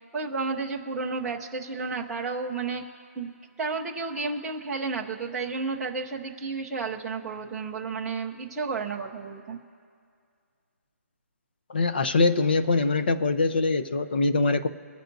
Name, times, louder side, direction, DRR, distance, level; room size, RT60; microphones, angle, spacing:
voice 1, 0.1-2.9 3.2-3.3 3.6-9.6, right 4 dB, 5° right, -5 dB, 0.6 m, -32 dB
voice 2, 11.7-14.7, left 3 dB, 40° left, 10 dB, 0.8 m, -23 dB
23.0 x 9.9 x 2.7 m, 2.3 s
hypercardioid pair, 175°, 8 cm